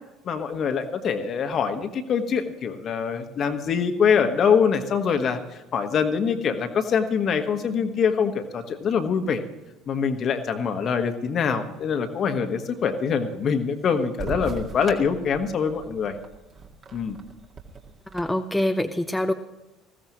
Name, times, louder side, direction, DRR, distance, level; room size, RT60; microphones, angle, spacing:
voice 1, 0.2-5.4 5.7-9.4 9.9-16.1 16.9-17.2, left 6 dB, 40° left, 7 dB, 1.4 m, -24 dB
sound 1, 14.2-18.2, right 4 dB, 40° right, 2.0 m, -38 dB
voice 2, 18.1-19.3, left 1 dB, 5° left, 6 dB, 0.8 m, -25 dB
20.0 x 15.5 x 3.1 m, 1.0 s
figure-of-eight pair, 60°, 0 cm